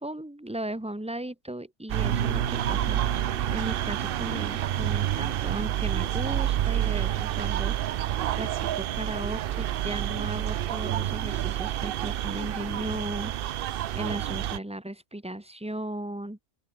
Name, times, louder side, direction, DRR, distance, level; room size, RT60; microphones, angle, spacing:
voice 1, 0.0-3.2 3.5-8.0 8.4-13.6 13.9-16.4, right 1 dB, 5° right, 1.8 m, -36 dB
sound 1, 1.9-14.6, right 12 dB, 75° right, 0.5 m, -29 dB
sound 2, 2.0-7.8, right 6 dB, 55° right, 1.7 m, -38 dB
open air
omnidirectional pair, 1.5 m